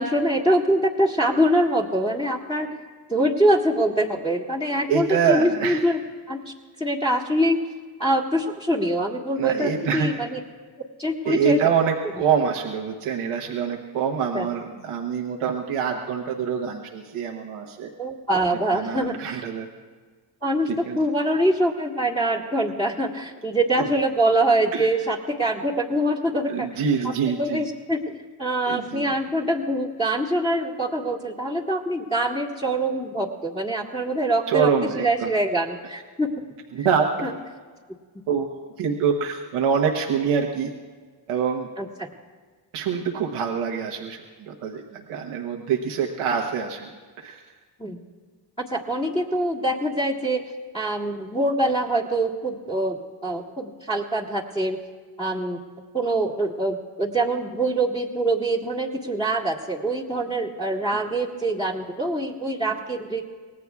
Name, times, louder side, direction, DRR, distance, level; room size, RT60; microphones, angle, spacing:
voice 1, 0.0-2.7 3.1-6.0 6.3-6.5 6.8-7.6 8.0-10.4 11.0-11.6 14.3-14.5 18.0-19.4 20.4-26.7 27.3-36.3 37.2-37.3 41.8-42.1 47.8-48.0 48.7-50.4 50.7-53.0 53.2-54.8 55.2-55.6 55.9-63.2, right 1 dB, 10° left, -6 dB, 1.8 m, -24 dB
voice 2, 4.9-5.8 9.4-10.1 11.2-17.9 18.7-19.7 20.7-21.0 23.8-23.9 24.7-24.9 26.5-27.6 28.7-29.1 34.5-35.3 36.7-37.3 38.3-38.5 38.8-40.7 41.3-41.7 42.7-46.9 47.2-47.4, right 6 dB, 85° right, 1 dB, 1.2 m, -25 dB
24.0 x 18.0 x 2.3 m, 1.5 s
cardioid pair, 65°, 49 cm